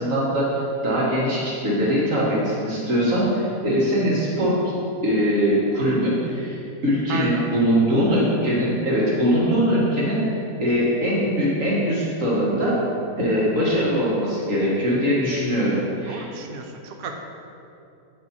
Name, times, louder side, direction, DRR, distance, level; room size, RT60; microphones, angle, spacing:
voice 1, 0.0-4.6 5.0-12.8 13.2-16.2, equal, 55° right, -6 dB, 2.1 m, -22 dB
voice 2, 7.1-7.5 16.1-17.1, right 5 dB, 70° right, 3 dB, 0.5 m, -33 dB
8.9 x 4.2 x 4.3 m, 2.6 s
omnidirectional pair, 1.7 m